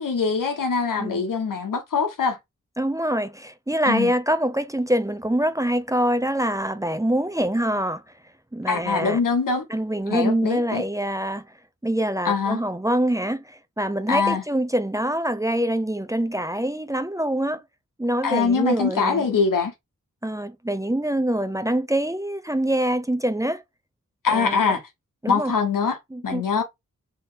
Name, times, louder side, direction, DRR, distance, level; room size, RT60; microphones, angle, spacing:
voice 1, 0.0-2.4 3.9-4.1 8.7-9.7 10.1-10.8 12.2-12.6 14.1-14.4 18.2-19.7 24.2-24.8 25.3-26.0 26.2-26.6, left 5 dB, 80° left, 1.3 m, -23 dB
voice 2, 2.8-8.0 8.5-9.2 9.7-11.5 11.8-17.6 18.0-19.3 20.2-23.6 24.3-24.6 25.2-25.5 26.1-26.4, right 1 dB, 10° right, 0.6 m, -25 dB
3.5 x 3.0 x 4.2 m
cardioid pair, 50°, 32 cm